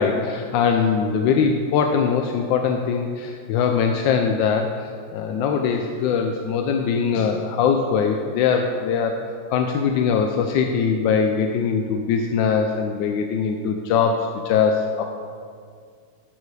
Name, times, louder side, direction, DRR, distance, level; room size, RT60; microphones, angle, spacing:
voice 1, 0.0-9.2 9.5-15.0, left 6 dB, 75° left, 4 dB, 1.1 m, -21 dB
13.0 x 4.6 x 4.8 m, 2.1 s
omnidirectional pair, 2.4 m